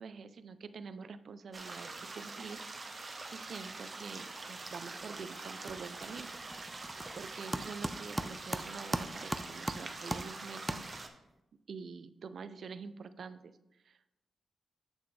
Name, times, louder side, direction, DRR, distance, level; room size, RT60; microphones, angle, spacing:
voice 1, 0.0-2.6 3.0-6.3 7.1-11.2 11.7-13.5 13.8-14.2, right 5 dB, 60° right, 12 dB, 0.5 m, -46 dB
sound 1, 1.5-11.1, right 3 dB, 35° right, 0.9 m, -45 dB
sound 2, 4.8-5.2 5.4-11.3, right 1 dB, 5° right, 0.5 m, -40 dB
8.3 x 6.9 x 3.3 m, 0.90 s
cardioid pair, 90°, 0 cm